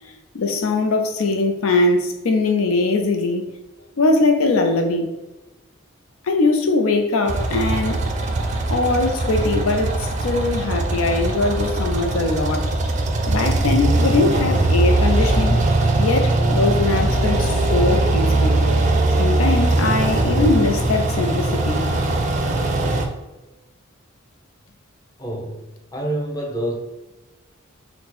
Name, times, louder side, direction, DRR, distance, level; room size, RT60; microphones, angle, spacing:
voice 1, 0.3-3.5 4.0-5.1 6.2-8.0 8.7-12.7 13.3-15.6 16.0-18.6 19.2-21.9, left 3 dB, 85° left, 5 dB, 0.5 m, -21 dB
sound 1, 7.3-23.1, right 2 dB, 35° right, 0.4 m, -20 dB
voice 2, 25.2-26.7, right 1 dB, 15° left, -2 dB, 0.6 m, -28 dB
4.2 x 2.1 x 4.2 m, 1.1 s
head